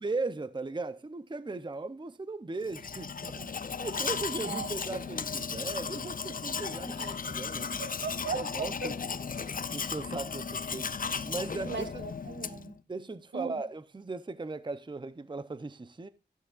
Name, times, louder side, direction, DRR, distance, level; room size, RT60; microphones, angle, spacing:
voice 1, 0.0-7.7 8.3-9.1 9.7-10.9 11.3-11.9 12.9-16.1, right 3 dB, 25° right, 0.6 m, -37 dB
Domestic sounds home sounds, 2.6-12.7, left 5 dB, 50° left, 0.5 m, -36 dB
voice 2, 7.8-8.5 8.8-8.9 11.7-12.7 13.3-13.6, right 4 dB, 70° right, 1.2 m, -37 dB
13.0 x 10.5 x 2.4 m
wide cardioid pair, 60°, 19 cm